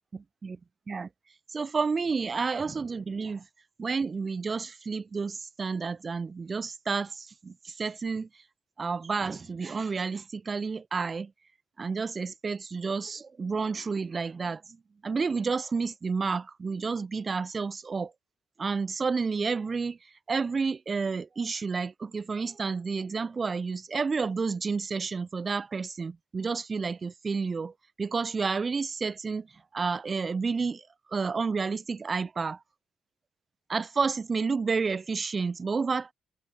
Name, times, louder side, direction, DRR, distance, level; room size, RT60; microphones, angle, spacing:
voice 1, 0.1-0.6 0.9-1.1 1.5-3.4 3.8-8.3 8.8-11.3 11.8-14.6 15.0-18.1 18.6-20.0 20.3-27.7 28.0-29.5 29.7-32.6 33.7-36.1, right 4 dB, 35° right, 0.8 m, -30 dB
cardioid pair, 90°, 0 cm